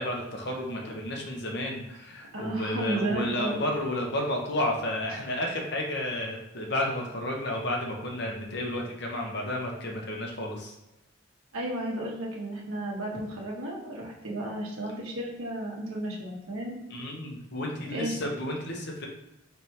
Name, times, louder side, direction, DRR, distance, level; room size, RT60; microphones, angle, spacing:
voice 1, 0.0-10.8 16.9-19.1, left 1 dB, 55° left, 0 dB, 0.9 m, -32 dB
voice 2, 2.3-3.6 11.5-16.7 17.9-18.1, right 1 dB, 85° right, -2 dB, 1.3 m, -33 dB
4.7 x 3.4 x 2.9 m, 0.94 s
head